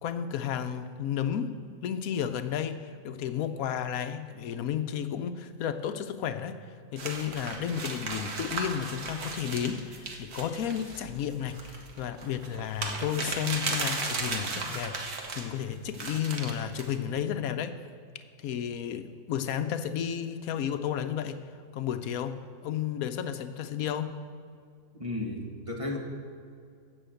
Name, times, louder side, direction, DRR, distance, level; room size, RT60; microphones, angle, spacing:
voice 1, 0.0-1.5 1.8-17.8 18.4-21.4 21.7-24.1, left 9 dB, 75° left, 9 dB, 1.1 m, -32 dB
sound 1, 7.0-15.5 15.9-17.0, right 3 dB, 90° right, 2.0 m, -36 dB
voice 2, 25.0-26.0, left 2 dB, 20° right, 0 dB, 1.5 m, -33 dB
15.5 x 6.4 x 7.8 m, 2.3 s
omnidirectional pair, 1.6 m